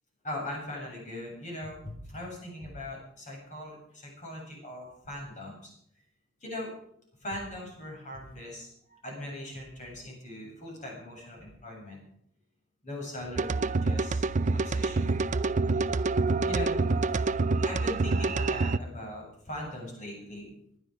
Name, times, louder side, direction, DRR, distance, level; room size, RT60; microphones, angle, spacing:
voice 1, 0.2-5.5 6.4-6.7 7.2-12.0 12.8-14.2 14.5-15.1 16.4-16.7 17.0-17.3 17.6-20.5, left 1 dB, 40° left, -1 dB, 7.8 m, -40 dB
sound 1, 13.4-18.8, right 3 dB, 40° right, 0.5 m, -27 dB
19.5 x 12.0 x 5.2 m, 0.71 s
head